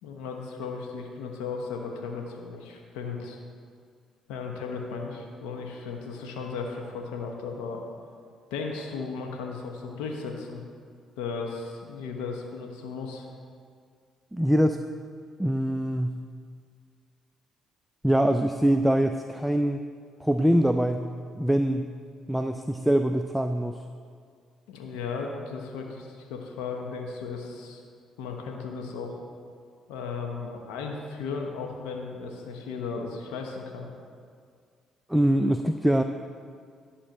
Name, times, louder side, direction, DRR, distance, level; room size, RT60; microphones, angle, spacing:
voice 1, 0.0-3.4 4.3-7.8 8.5-10.6 11.2-13.3 24.7-27.8 28.2-29.2 29.9-33.9, left 4 dB, 85° left, 1 dB, 0.9 m, -35 dB
voice 2, 14.3-14.8 15.4-16.2 18.0-19.8 20.2-21.0 21.3-21.9 22.3-23.8 35.1-36.0, right 1 dB, 5° right, 7 dB, 0.5 m, -23 dB
11.0 x 4.3 x 7.8 m, 2.1 s
supercardioid pair, 60°, 0 cm